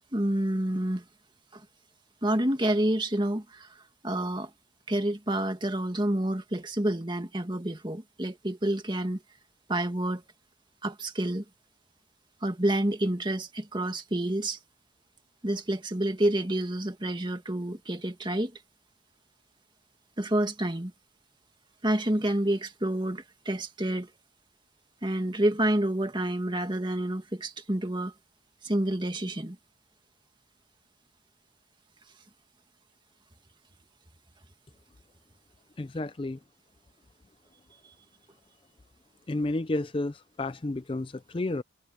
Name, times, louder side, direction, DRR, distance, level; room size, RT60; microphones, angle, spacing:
voice 1, 0.1-1.0 1.5-1.6 2.2-4.5 4.9-9.2 9.7-10.2 10.8-11.4 12.4-14.6 15.4-18.5 20.2-20.9 21.8-24.1 25.0-28.1 28.6-29.6, right 1 dB, 25° right, 2.0 m, -28 dB
voice 2, 35.8-36.4 39.3-41.6, left 2 dB, 25° left, 0.5 m, -31 dB
head